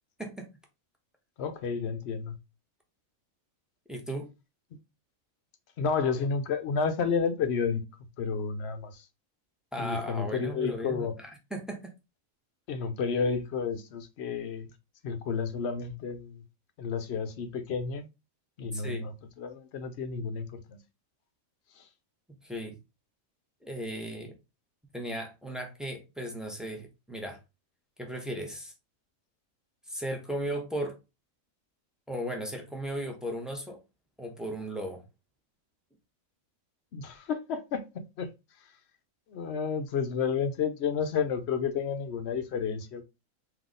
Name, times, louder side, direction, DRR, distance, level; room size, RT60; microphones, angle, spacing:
voice 1, 1.4-2.3 5.8-7.8 8.2-9.0 9.8-11.1 12.7-14.7 15.0-16.4 16.8-18.1 18.6-19.1 19.4-20.8 36.9-37.9 38.2-38.3 39.3-43.0, left 5 dB, 60° left, 0.8 m, -31 dB
voice 2, 3.9-4.3 9.7-11.9 18.7-19.1 22.4-22.8 23.6-24.3 24.9-27.4 28.0-28.7 29.9-31.0 32.1-33.8 34.2-35.0, right 1 dB, ahead, 0.7 m, -36 dB
3.9 x 2.8 x 3.7 m
omnidirectional pair, 1.4 m